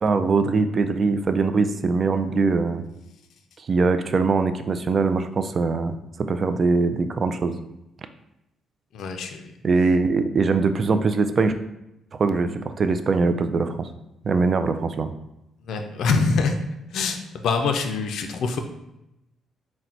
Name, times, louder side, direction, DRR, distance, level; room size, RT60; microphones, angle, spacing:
voice 1, 0.0-2.8 3.7-6.0 6.3-7.6 9.6-11.5 12.2-13.9 14.2-15.1, right 4 dB, 45° right, 9 dB, 0.3 m, -22 dB
voice 2, 8.9-9.5 15.7-16.6 16.9-18.6, left 4 dB, 75° left, 5 dB, 0.4 m, -24 dB
3.9 x 2.1 x 4.3 m, 0.87 s
cardioid pair, 90°, 0 cm